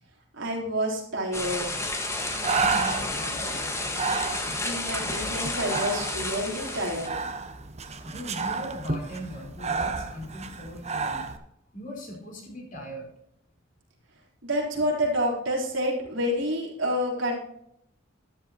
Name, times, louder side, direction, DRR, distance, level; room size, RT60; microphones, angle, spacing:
voice 1, 0.4-1.9 4.6-7.1 14.4-17.4, equal, 70° right, -2 dB, 3.8 m, -28 dB
sound 1, 1.3-7.1, left 2 dB, 15° left, 1.5 m, -31 dB
Breathing, 1.9-11.4, right 4 dB, 35° right, 1.0 m, -32 dB
voice 2, 2.5-3.7 8.0-11.3 11.7-13.1, equal, 45° left, 1 dB, 4.3 m, -39 dB
13.0 x 11.0 x 2.9 m, 0.75 s
head